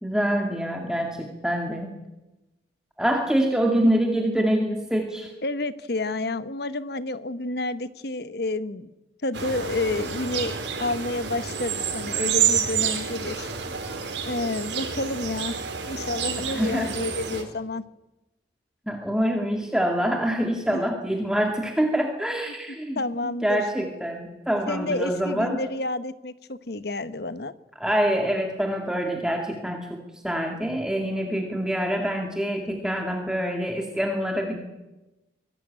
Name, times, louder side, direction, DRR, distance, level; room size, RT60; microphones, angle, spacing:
voice 1, 0.0-1.9 3.0-5.3 16.5-16.9 18.9-23.0 23.4-25.6 27.8-34.6, equal, 5° right, 2 dB, 2.2 m, -25 dB
voice 2, 5.4-8.9 9.2-13.5 14.2-15.5 15.9-17.8 20.7-20.8 22.9-23.6 24.7-27.5, left 2 dB, 60° left, 14 dB, 1.1 m, -30 dB
sound 1, 9.3-17.4, right 7 dB, 75° right, 4.2 m, -29 dB
24.5 x 17.5 x 8.9 m, 1.0 s
head